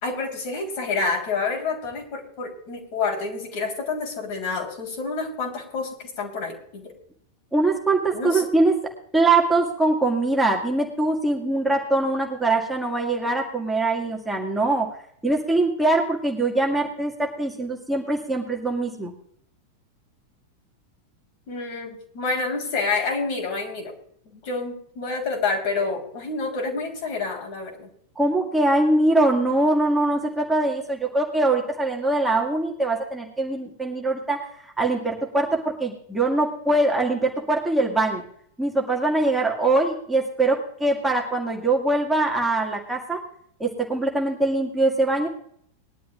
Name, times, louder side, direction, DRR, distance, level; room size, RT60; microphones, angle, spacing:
voice 1, 0.0-6.9 8.1-8.4 21.5-23.9 24.3-27.9, left 4 dB, 45° left, 2 dB, 3.6 m, -28 dB
voice 2, 7.5-8.7 9.1-14.9 15.2-19.1 28.2-34.5 34.8-38.2 38.6-43.2 43.6-45.3, right 2 dB, 5° right, -1 dB, 2.0 m, -22 dB
20.5 x 11.5 x 2.4 m, 0.65 s
figure-of-eight pair, 90°, 0 cm